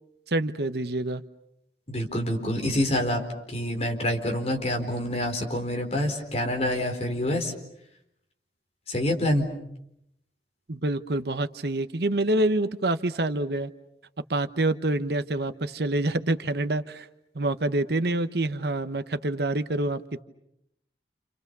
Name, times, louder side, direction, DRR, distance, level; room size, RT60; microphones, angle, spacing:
voice 1, 0.3-1.2 10.7-13.7 14.3-17.1 17.3-20.2, right 2 dB, 65° right, 11 dB, 1.1 m, -26 dB
voice 2, 1.9-3.2 3.5-7.5 8.9-9.5, left 1 dB, 35° left, 2 dB, 4.4 m, -27 dB
29.0 x 29.0 x 6.9 m, 0.80 s
head